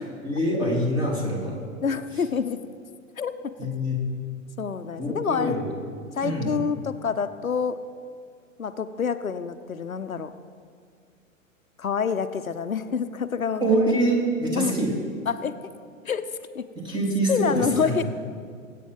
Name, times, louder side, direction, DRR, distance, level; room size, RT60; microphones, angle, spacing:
voice 1, 0.2-1.6 3.6-4.0 5.0-5.6 6.2-6.5 13.6-14.9 16.8-18.0, right 1 dB, 10° right, -2 dB, 3.4 m, -25 dB
voice 2, 1.8-2.6 3.2-3.4 4.6-5.6 6.2-7.8 8.6-10.3 11.8-13.7 14.6-14.7 15.3-15.5 16.0-16.3 16.5-16.7 17.3-18.0, left 6 dB, 85° left, 10 dB, 0.7 m, -27 dB
21.5 x 8.4 x 5.3 m, 2.2 s
figure-of-eight pair, 110°, 40 cm